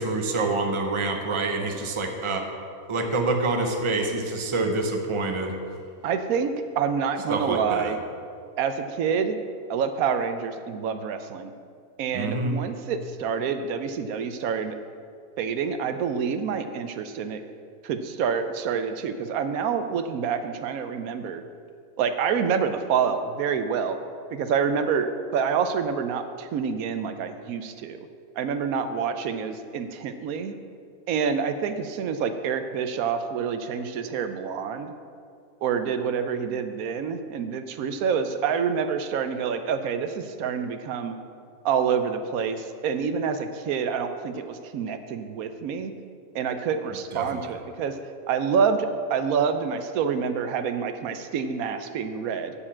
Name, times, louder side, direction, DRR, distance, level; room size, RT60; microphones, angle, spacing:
voice 1, 0.0-2.5 2.9-5.6 7.3-7.9 12.1-12.6 47.1-47.5, right 3 dB, 25° right, 4 dB, 0.8 m, -26 dB
voice 2, 6.0-8.0 8.6-9.4 9.7-11.5 12.0-14.8 15.4-17.4 17.8-21.4 22.0-24.0 24.3-28.1 28.4-30.5 31.1-34.9 35.6-41.2 41.6-45.9 46.3-47.9 48.3-52.5, right 6 dB, 85° right, 8 dB, 1.1 m, -27 dB
7.2 x 6.8 x 7.3 m, 2.3 s
omnidirectional pair, 1.5 m